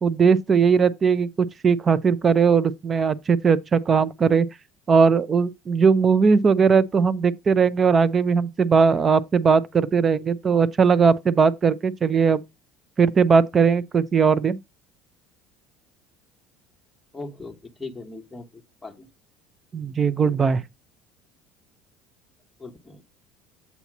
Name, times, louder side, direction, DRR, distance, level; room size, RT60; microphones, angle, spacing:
voice 1, 0.0-4.5 4.9-12.4 13.0-14.6 19.7-20.6, right 5 dB, 25° right, 0.4 m, -19 dB
voice 2, 17.1-19.1 22.6-23.0, left 3 dB, 5° left, 1.0 m, -39 dB
8.2 x 2.8 x 5.9 m
cardioid pair, 150°, 0 cm